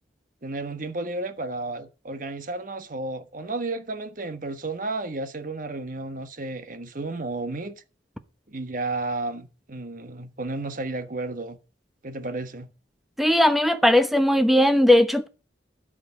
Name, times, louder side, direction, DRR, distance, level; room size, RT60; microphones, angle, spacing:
voice 1, 0.4-7.7 8.5-11.6 12.0-12.7, right 2 dB, 50° right, 1.2 m, -32 dB
voice 2, 13.2-15.3, left 1 dB, ahead, 1.0 m, -18 dB
11.5 x 5.1 x 8.5 m
head